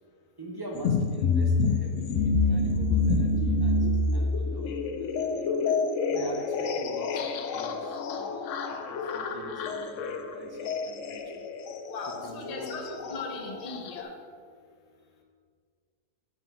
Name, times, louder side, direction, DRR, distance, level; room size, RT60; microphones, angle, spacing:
voice 1, 0.4-5.6 6.1-11.5 12.1-12.7 13.0-13.1, right 1 dB, 20° right, -2 dB, 0.8 m, -43 dB
sound 1, 0.7-14.0, left 3 dB, 65° left, 0.8 m, -28 dB
voice 2, 11.9-14.1, left 3 dB, 35° left, 3 dB, 0.7 m, -38 dB
5.7 x 5.7 x 5.8 m, 2.1 s
omnidirectional pair, 1.7 m